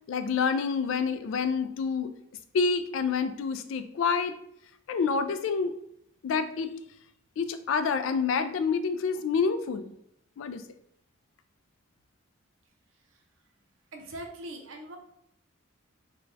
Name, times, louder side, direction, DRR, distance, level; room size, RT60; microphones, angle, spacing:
voice 1, 0.1-2.1 2.5-4.3 4.9-5.7 6.2-6.7 7.4-9.9 10.4-10.6, left 5 dB, 70° left, 10 dB, 0.3 m, -28 dB
voice 2, 13.9-15.0, right 1 dB, 70° right, 3 dB, 0.7 m, -41 dB
3.3 x 2.2 x 3.8 m, 0.75 s
head